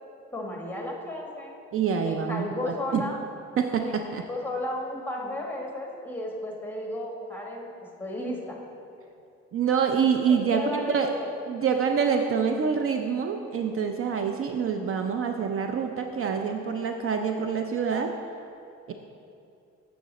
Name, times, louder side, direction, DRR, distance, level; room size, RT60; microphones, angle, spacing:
voice 1, 0.3-1.5 2.0-3.2 3.8-3.9 4.3-7.7 8.0-8.6 10.3-11.3, left 1 dB, 5° left, 0 dB, 1.2 m, -33 dB
voice 2, 1.7-3.1 3.6-4.2 9.5-11.1 11.5-18.1 18.9-19.0, right 6 dB, 45° right, 5 dB, 0.5 m, -26 dB
7.4 x 5.8 x 4.0 m, 2.7 s
cardioid pair, 90°, 30 cm